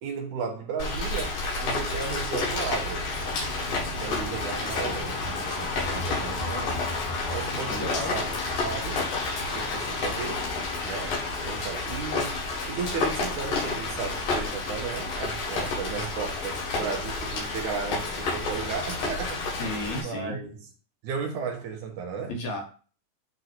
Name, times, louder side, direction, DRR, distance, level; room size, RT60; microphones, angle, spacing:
voice 1, 0.0-3.1 4.0-6.8 7.3-8.3 8.6-9.1 9.5-10.5 10.8-19.6 20.0-20.6 21.0-22.3, right 5 dB, 70° right, 2.4 m, -35 dB
Rain, 0.8-20.0, left 3 dB, 80° left, 4.1 m, -30 dB
voice 2, 7.7-8.3 19.6-20.4 22.3-22.6, left 1 dB, 60° left, 2.6 m, -33 dB
12.0 x 4.1 x 2.9 m
omnidirectional pair, 3.9 m